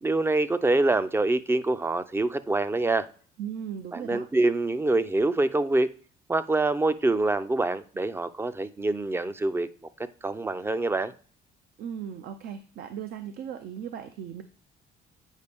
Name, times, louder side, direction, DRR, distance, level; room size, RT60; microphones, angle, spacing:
voice 1, 0.0-3.1 3.9-5.9 6.3-9.7 10.2-11.1, right 2 dB, 15° right, 13 dB, 0.5 m, -25 dB
voice 2, 3.4-4.3 11.8-14.4, right 8 dB, 65° right, 9 dB, 0.6 m, -37 dB
8.2 x 5.0 x 3.5 m, 0.42 s
cardioid pair, 110°, 17 cm